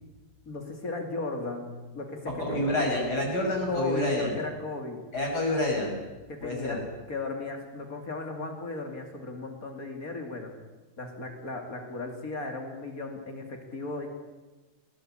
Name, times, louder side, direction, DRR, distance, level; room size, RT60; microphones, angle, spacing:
voice 1, 0.5-2.6 3.7-5.0 6.3-6.8 7.1-10.5 11.0-14.1, left 3 dB, 60° left, 3 dB, 3.0 m, -36 dB
voice 2, 2.4-4.3 5.1-6.0 6.4-6.8, left 1 dB, 80° left, 0 dB, 6.5 m, -28 dB
21.0 x 17.5 x 8.8 m, 1.2 s
omnidirectional pair, 1.7 m